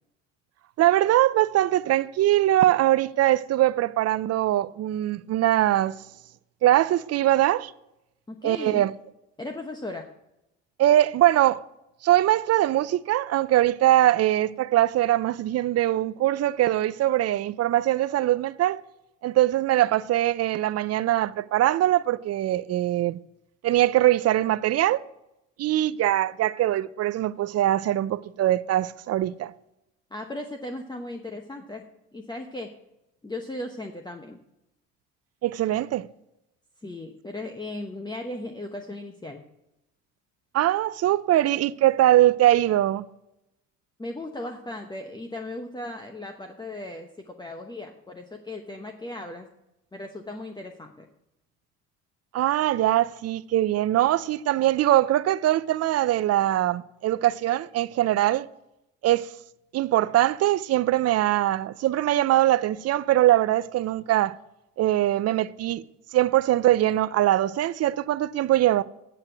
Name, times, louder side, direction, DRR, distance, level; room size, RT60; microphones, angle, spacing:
voice 1, 0.8-6.0 6.6-7.7 8.4-8.9 10.8-11.6 12.0-18.8 19.2-23.2 23.6-25.0 25.6-29.5 35.4-36.0 40.5-43.0 52.3-58.5 59.0-59.3 59.7-64.4 64.8-65.8 66.1-68.8, right 14 dB, 45° right, 0.5 m, -22 dB
voice 2, 8.3-8.8 9.4-10.1 30.1-31.8 32.1-32.7 33.2-34.4 36.8-39.4 44.0-49.5 49.9-51.1, left 1 dB, 10° left, 0.9 m, -37 dB
8.9 x 5.8 x 7.8 m
hypercardioid pair, 65°, 34 cm